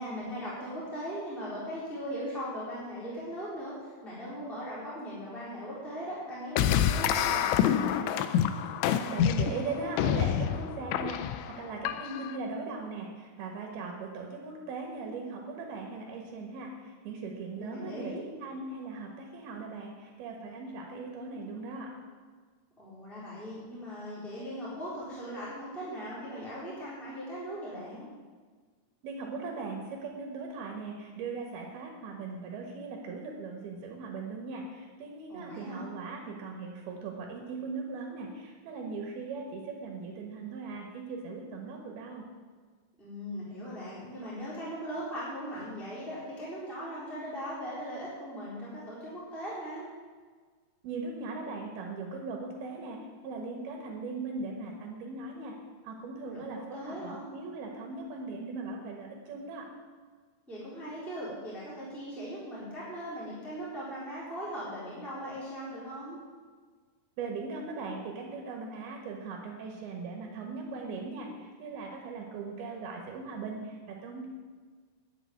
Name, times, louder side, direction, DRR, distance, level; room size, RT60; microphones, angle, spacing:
voice 1, 0.0-8.1 17.6-18.2 22.8-28.1 35.3-35.9 43.0-49.9 56.3-57.3 60.5-66.2, equal, ahead, -8 dB, 3.3 m, -39 dB
sound 1, 6.6-12.4, left 10 dB, 85° left, 2.9 m, -27 dB
voice 2, 9.0-21.9 29.0-42.2 50.8-53.0 53.2-55.5 55.8-59.7 67.2-74.3, right 4 dB, 65° right, 1 dB, 3.0 m, -39 dB
11.0 x 7.0 x 9.4 m, 1.5 s
omnidirectional pair, 5.2 m